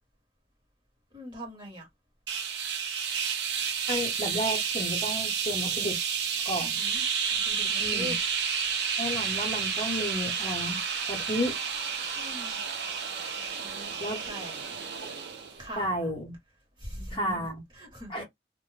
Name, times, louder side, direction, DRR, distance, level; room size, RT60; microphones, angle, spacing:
voice 1, 1.1-1.9 6.6-8.2 12.1-12.6 13.6-13.9 14.3-14.8 15.6-16.1 16.8-17.5 17.7-18.2, equal, 25° right, 1.1 m, -42 dB
sound 1, 2.3-15.6, right 6 dB, 70° right, 0.5 m, -31 dB
voice 2, 3.9-6.0 6.4-6.8 7.8-8.1 9.0-10.8 11.1-11.6 14.0-14.2 15.0-15.1 15.8-16.3 17.1-17.6 18.1-18.2, equal, 30° left, 0.8 m, -32 dB
2.2 x 2.0 x 3.1 m
head